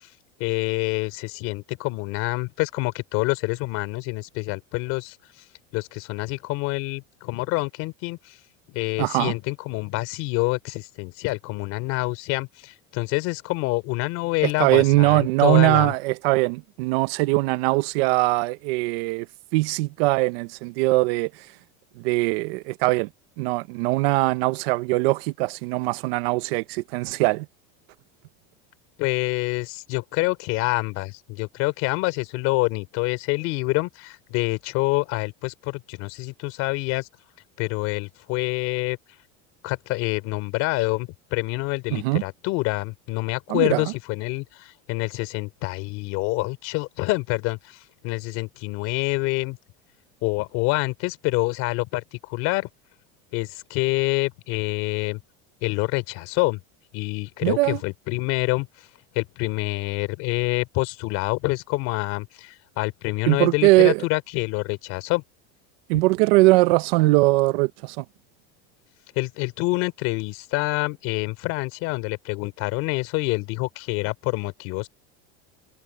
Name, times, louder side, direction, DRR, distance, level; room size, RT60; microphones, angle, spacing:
voice 1, 0.4-5.2 5.7-8.3 8.7-15.9 29.0-37.1 37.6-39.0 39.6-47.8 48.0-49.6 50.2-52.7 53.3-55.2 55.6-56.6 56.9-58.7 59.1-65.2 69.2-74.9, left 23 dB, 50° left, 3.6 m, -27 dB
voice 2, 9.0-9.3 14.4-19.3 19.5-21.3 22.0-23.1 23.4-27.5 41.9-42.2 43.5-43.8 57.4-57.8 63.3-64.0 65.9-68.0, right 22 dB, 65° right, 0.8 m, -21 dB
cardioid pair, 170°, 33 cm